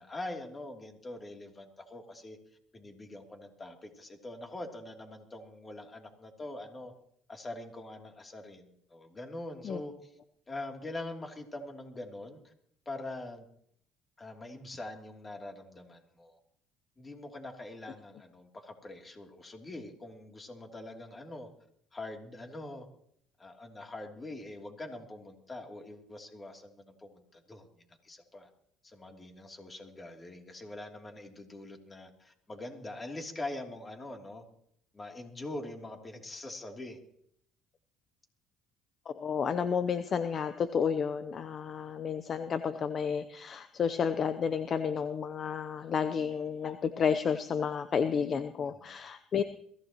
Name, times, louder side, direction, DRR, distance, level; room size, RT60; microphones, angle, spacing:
voice 1, 0.0-2.4 2.7-6.9 7.3-10.2 10.5-12.5 12.8-13.5 14.2-16.4 17.0-21.5 21.9-22.9 23.4-28.5 28.8-34.4 34.9-37.0 48.7-49.0, left 2 dB, 25° left, 2 dB, 3.0 m, -43 dB
voice 2, 39.1-49.4, left 6 dB, 45° left, 11 dB, 0.7 m, -31 dB
22.5 x 15.5 x 3.0 m, 0.67 s
cardioid pair, 100°, 0 cm